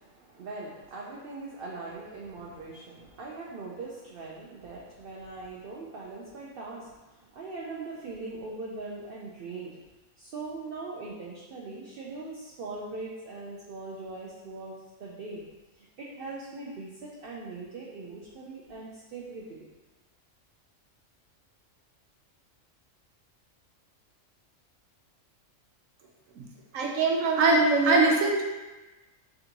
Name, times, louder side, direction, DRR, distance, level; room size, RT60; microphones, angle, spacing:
voice 1, 0.0-9.8 10.2-14.7 15.0-15.4 15.8-19.7, right 3 dB, 60° right, -4 dB, 0.6 m, -41 dB
voice 2, 26.7-28.4, right 3 dB, 80° right, 0 dB, 1.1 m, -22 dB
3.8 x 3.4 x 2.9 m, 1.1 s
omnidirectional pair, 1.4 m